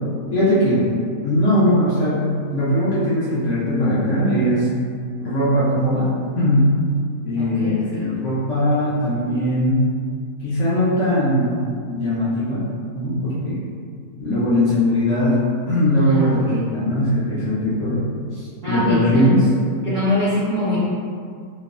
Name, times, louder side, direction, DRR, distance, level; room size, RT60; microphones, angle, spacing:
voice 1, 0.3-0.9 1.2-4.7 5.2-6.8 7.2-9.9 10.4-11.6 11.9-13.6 14.2-15.4 15.7-18.1 18.3-19.5, equal, 65° left, -10 dB, 0.8 m, -20 dB
voice 2, 7.3-8.1 16.0-16.6 18.6-19.2 19.8-20.8, left 1 dB, 60° right, -13 dB, 0.6 m, -24 dB
3.0 x 2.0 x 2.3 m, 2.2 s
omnidirectional pair, 1.7 m